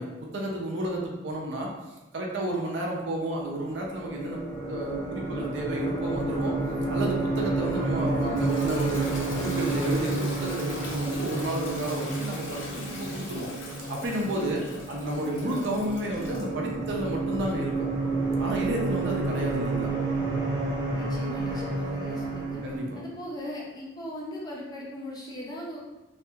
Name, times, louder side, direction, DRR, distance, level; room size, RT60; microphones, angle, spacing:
voice 1, 0.0-1.7 2.1-4.4 4.7-6.6 6.9-9.1 9.4-13.5 13.9-17.9 18.4-20.0 22.6-23.0, right 1 dB, 65° right, -2 dB, 0.5 m, -31 dB
sound 1, 3.3-22.8, right 3 dB, 20° right, 0.8 m, -30 dB
Toilet flush, 8.0-16.5, left 2 dB, 80° left, 0.6 m, -41 dB
voice 2, 20.9-22.6 23.0-25.8, left 1 dB, 20° left, -5 dB, 0.4 m, -39 dB
2.4 x 2.3 x 2.7 m, 1.1 s
head